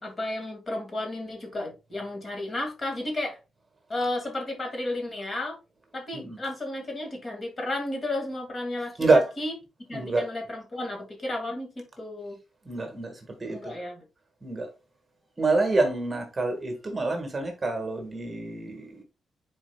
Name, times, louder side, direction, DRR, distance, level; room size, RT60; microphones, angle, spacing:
voice 1, 0.0-3.4 3.9-5.6 5.9-9.5 9.9-12.4 13.5-14.0, left 1 dB, 30° left, 2.1 m, -33 dB
voice 2, 9.9-10.2 12.6-13.7 14.4-14.7 15.4-19.0, right 3 dB, 25° right, 1.6 m, -26 dB
10.0 x 4.4 x 2.3 m
cardioid pair, 125°, 0 cm